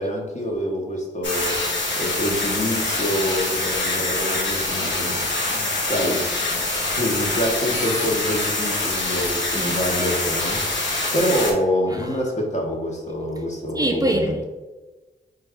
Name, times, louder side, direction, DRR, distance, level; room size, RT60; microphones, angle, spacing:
voice 1, 0.0-6.2 6.8-14.4, equal, 40° left, 1.0 m, -26 dB
sound 1, 1.2-11.5, left 2 dB, 75° left, 0.8 m, -25 dB
voice 2, 13.7-14.4, right 1 dB, 20° right, 0.5 m, -23 dB
4.0 x 2.4 x 3.5 m
supercardioid pair, 40°, 19 cm